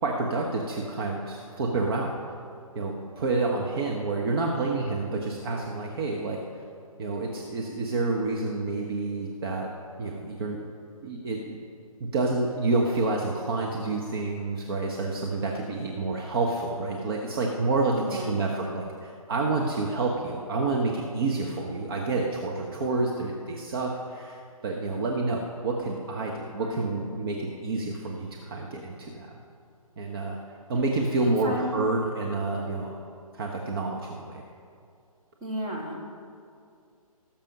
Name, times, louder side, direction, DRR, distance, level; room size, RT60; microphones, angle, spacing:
voice 1, 0.0-2.2 2.7-6.4 7.0-9.7 10.0-10.6 11.0-11.6 12.0-29.3 30.0-30.4 30.7-33.0 33.3-34.4, right 3 dB, 40° right, -1 dB, 1.3 m, -28 dB
voice 2, 17.9-18.4 26.6-27.0 31.2-31.8 35.4-36.0, equal, 20° right, -2 dB, 2.2 m, -34 dB
18.0 x 7.5 x 5.4 m, 2.4 s
figure-of-eight pair, 145°, 19 cm